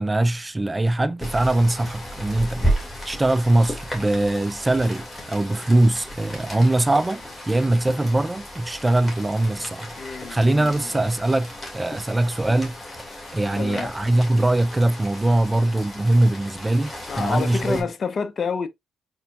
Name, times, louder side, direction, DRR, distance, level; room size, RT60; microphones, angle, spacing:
voice 1, 0.0-2.7 3.0-7.2 7.5-9.9 10.3-12.8 13.3-17.8, right 1 dB, 20° right, 0.3 m, -21 dB
Rain, 1.2-17.8, equal, 15° left, 2.4 m, -34 dB
voice 2, 10.0-11.0 13.5-13.9 17.1-18.7, left 5 dB, 50° left, 0.7 m, -29 dB
4.3 x 4.2 x 2.4 m
supercardioid pair, 65°, 0 cm